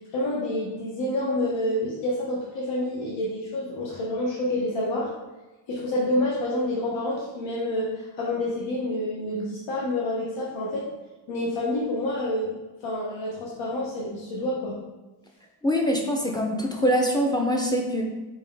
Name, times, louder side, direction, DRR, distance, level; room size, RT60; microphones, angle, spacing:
voice 1, 0.1-5.1 5.7-10.9 11.3-12.5 12.8-14.8, left 1 dB, 80° left, -5 dB, 0.8 m, -28 dB
voice 2, 15.6-18.0, equal, 10° left, 1 dB, 0.5 m, -24 dB
3.7 x 2.8 x 3.4 m, 1.1 s
cardioid pair, 70°, 44 cm